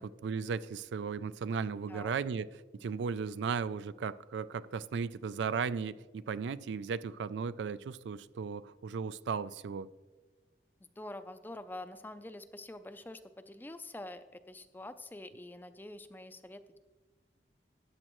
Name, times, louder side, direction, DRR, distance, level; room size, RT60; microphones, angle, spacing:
voice 1, 0.2-2.5 2.7-9.9, right 5 dB, 90° right, 16 dB, 0.4 m, -36 dB
voice 2, 11.0-16.8, left 1 dB, 10° left, 11 dB, 0.4 m, -46 dB
14.0 x 9.8 x 3.0 m, 1.3 s
head